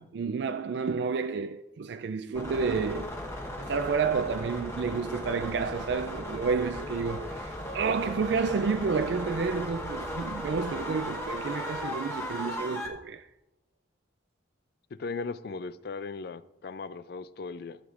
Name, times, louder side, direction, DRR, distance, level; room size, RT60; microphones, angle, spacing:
voice 1, 0.0-3.1 3.6-13.3, right 5 dB, 65° right, 0.3 m, -30 dB
sound 1, 2.3-12.9, left 1 dB, 15° left, 1.0 m, -36 dB
voice 2, 15.0-17.8, left 4 dB, 55° left, 0.4 m, -37 dB
14.0 x 7.9 x 2.5 m
head